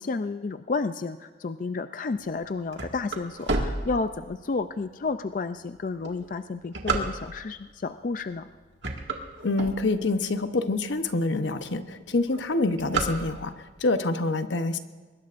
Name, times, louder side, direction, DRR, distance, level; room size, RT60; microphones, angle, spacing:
voice 1, 0.0-8.5, left 4 dB, 45° left, 10 dB, 0.4 m, -31 dB
sound 1, 2.3-4.6 5.1-5.2 5.9-7.6 8.2-8.4 8.7-10.3 10.8-10.9 11.1-11.2 11.5-11.8 12.1-13.7, right 3 dB, 80° right, 1.9 m, -30 dB
voice 2, 9.4-14.8, left 2 dB, 85° left, 9 dB, 0.9 m, -26 dB
23.5 x 20.5 x 2.6 m, 1.4 s
head